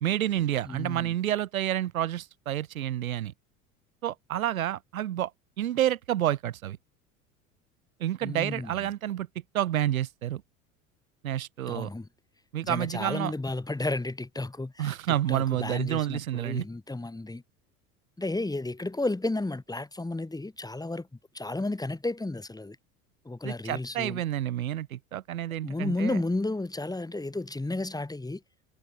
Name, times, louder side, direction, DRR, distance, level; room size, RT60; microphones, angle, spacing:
voice 1, 0.0-3.3 4.0-5.3 5.6-6.8 8.0-9.3 9.5-10.4 11.2-11.9 12.5-13.3 14.8-16.6 23.4-26.2, right 12 dB, 80° right, 2.6 m, -29 dB
voice 2, 0.6-1.1 8.2-8.9 11.7-12.1 12.6-17.4 18.2-21.1 21.3-22.8 23.2-24.2 25.6-28.4, left 2 dB, 10° left, 3.2 m, -32 dB
hypercardioid pair, 75°, 41 cm